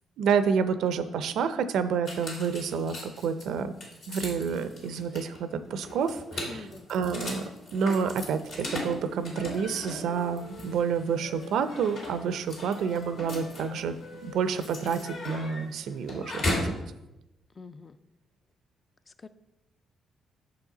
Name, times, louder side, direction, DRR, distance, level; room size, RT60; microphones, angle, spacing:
voice 1, 0.2-3.7 4.1-7.4 7.7-13.9 14.2-16.7, right 6 dB, 75° right, 11 dB, 0.4 m, -29 dB
sound 1, 2.0-16.8, left 1 dB, 70° left, 2.1 m, -38 dB
voice 2, 6.5-6.9 17.6-18.0 19.1-19.3, left 4 dB, 30° left, 12 dB, 0.3 m, -45 dB
Wind instrument woodwind instrument, 9.3-12.3 12.7-16.2, left 4 dB, 85° left, 0.7 m, -50 dB
6.4 x 4.8 x 3.9 m, 0.93 s
cardioid pair, 90°, 0 cm